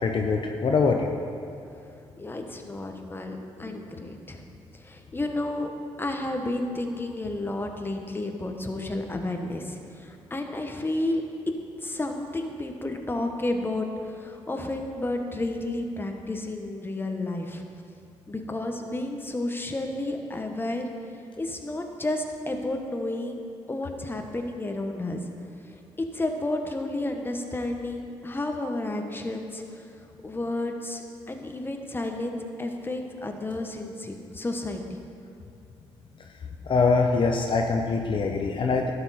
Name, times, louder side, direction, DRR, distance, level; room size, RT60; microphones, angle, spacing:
voice 1, 0.0-1.1 3.7-3.8 36.7-38.9, left 4 dB, 50° left, 2 dB, 0.7 m, -23 dB
voice 2, 2.2-4.4 4.8-5.7 6.0-11.2 11.8-17.6 18.3-20.9 21.4-23.4 23.7-25.2 26.1-29.6 30.2-34.8, left 2 dB, 20° left, 4 dB, 1.1 m, -31 dB
11.5 x 7.0 x 4.3 m, 2.6 s
supercardioid pair, 65°, 11 cm